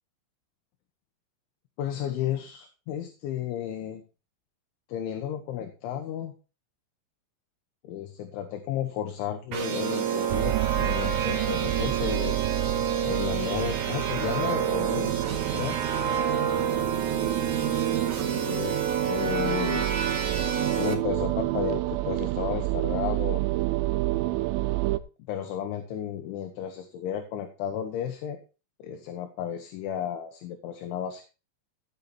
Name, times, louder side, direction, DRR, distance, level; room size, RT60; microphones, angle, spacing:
voice 1, 1.8-4.0 4.9-6.3 7.8-12.6 13.0-15.2 15.5-15.8 18.4-19.9 20.7-23.4 25.3-28.4 28.8-31.2, left 9 dB, 75° left, 5 dB, 3.4 m, -33 dB
sound 1, 9.5-20.9, right 7 dB, 50° right, 2.6 m, -28 dB
sound 2, 10.3-25.0, right 19 dB, 85° right, 3.3 m, -30 dB
15.0 x 6.8 x 4.3 m, 0.32 s
omnidirectional pair, 5.9 m